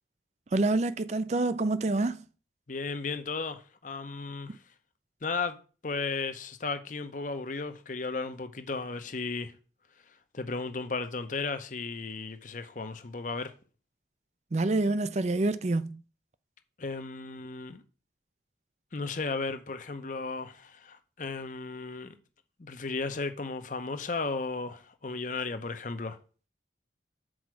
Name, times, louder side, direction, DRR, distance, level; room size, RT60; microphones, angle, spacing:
voice 1, 0.5-2.2 14.5-16.0, right 2 dB, 35° right, 0.4 m, -27 dB
voice 2, 2.7-4.6 5.2-5.6 5.8-9.5 10.3-13.5 16.8-17.8 18.9-22.1 22.6-26.2, left 4 dB, 45° left, 0.7 m, -35 dB
6.3 x 4.7 x 6.2 m
head